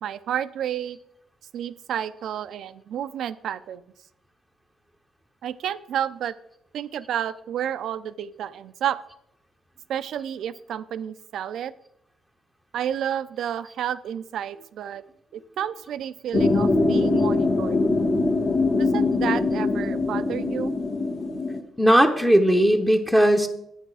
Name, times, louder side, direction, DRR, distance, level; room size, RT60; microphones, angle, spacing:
voice 1, 0.0-1.0 1.5-3.8 5.4-6.3 6.7-9.0 9.9-11.7 12.7-15.0 15.3-17.8 18.7-20.7, right 10 dB, 75° right, 14 dB, 0.5 m, -30 dB
sound 1, 16.3-21.6, left 3 dB, 70° left, 1.6 m, -22 dB
voice 2, 21.8-23.5, equal, 5° left, 3 dB, 0.9 m, -18 dB
10.0 x 8.7 x 4.9 m, 0.75 s
cardioid pair, 90°, 0 cm